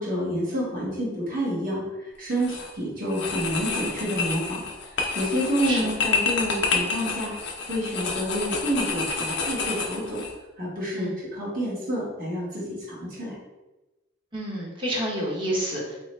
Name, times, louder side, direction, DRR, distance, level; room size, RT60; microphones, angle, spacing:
voice 1, 0.0-7.3 7.7-10.2 10.6-13.3, equal, 40° right, -5 dB, 1.4 m, -29 dB
sound 1, 2.3-2.7 3.1-10.3, left 4 dB, 55° left, 0.6 m, -29 dB
voice 2, 14.3-16.0, right 1 dB, 25° right, -4 dB, 1.0 m, -29 dB
4.0 x 3.0 x 3.2 m, 1.1 s
head